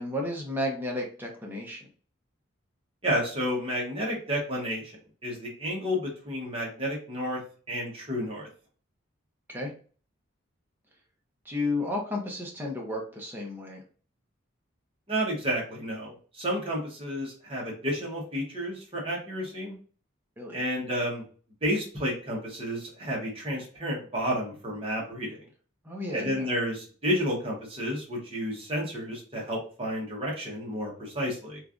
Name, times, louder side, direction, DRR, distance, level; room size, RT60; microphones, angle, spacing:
voice 1, 0.0-1.9 9.5-9.7 11.4-13.8 20.4-20.6 25.8-26.5, left 1 dB, 10° right, -1 dB, 0.6 m, -32 dB
voice 2, 3.0-5.0 5.2-7.4 7.7-8.5 15.1-19.8 20.5-21.2 21.6-25.4 26.1-31.6, equal, 25° right, -3 dB, 1.0 m, -31 dB
3.1 x 2.4 x 2.4 m, 0.41 s
head